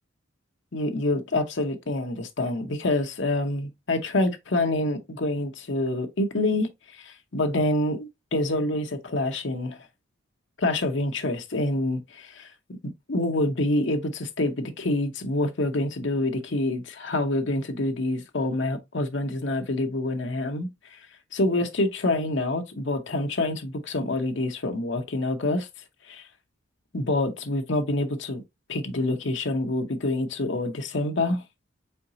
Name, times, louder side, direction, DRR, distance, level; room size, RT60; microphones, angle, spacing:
voice 1, 0.7-6.7 7.0-9.8 10.6-12.5 13.1-20.7 21.3-25.7 26.1-26.2 26.9-28.4 28.7-31.4, left 2 dB, 60° left, 0.8 m, -26 dB
4.4 x 3.9 x 2.7 m
head